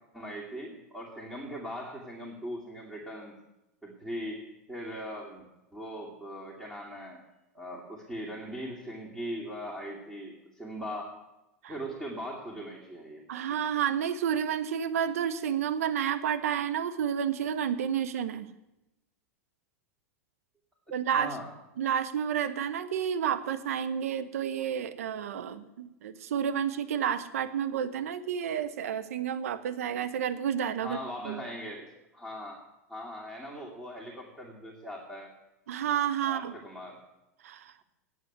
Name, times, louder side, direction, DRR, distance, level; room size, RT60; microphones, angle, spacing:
voice 1, 0.1-3.4 3.8-5.5 5.7-7.2 7.5-11.2 11.7-13.2 21.1-21.5 30.8-32.6 32.9-35.3 36.3-37.0, equal, ahead, -4 dB, 2.5 m, -40 dB
voice 2, 13.3-18.5 20.9-21.4 21.8-31.4 35.7-36.5 37.4-37.7, right 8 dB, 75° right, 12 dB, 0.8 m, -30 dB
9.2 x 8.0 x 9.3 m, 0.94 s
hypercardioid pair, 100°, 8 cm